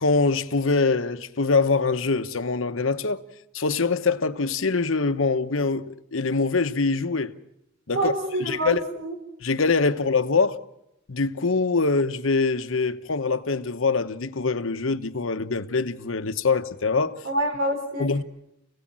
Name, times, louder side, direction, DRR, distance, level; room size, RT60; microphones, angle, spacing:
voice 1, 0.0-3.2 3.5-7.3 7.9-8.1 8.4-8.8 9.4-10.6 11.1-17.2 18.0-18.2, left 4 dB, 90° left, 1.0 m, -24 dB
voice 2, 7.9-9.2 17.2-18.2, right 1 dB, 80° right, 4.7 m, -27 dB
29.0 x 17.0 x 7.6 m
head